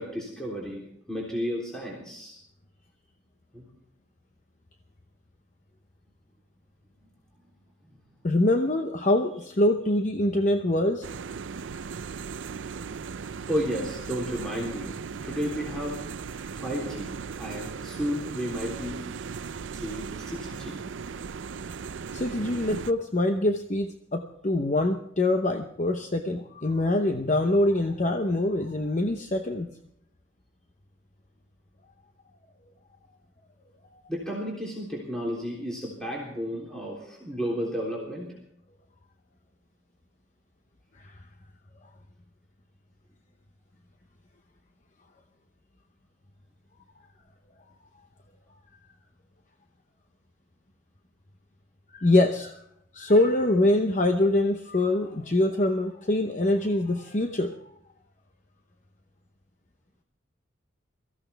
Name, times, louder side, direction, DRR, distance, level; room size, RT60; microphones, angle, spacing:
voice 1, 0.0-2.4 3.5-3.7 13.5-15.0 15.2-16.0 16.5-19.0 19.7-20.8 34.1-38.3, equal, 5° left, -4 dB, 3.4 m, -32 dB
voice 2, 8.2-11.1 22.1-29.7 41.0-41.1 51.9-52.6 52.9-57.6, left 1 dB, 40° left, 6 dB, 0.8 m, -24 dB
sound 1, 11.0-22.9, right 5 dB, 75° right, 0.5 m, -37 dB
23.0 x 15.0 x 3.4 m, 0.74 s
head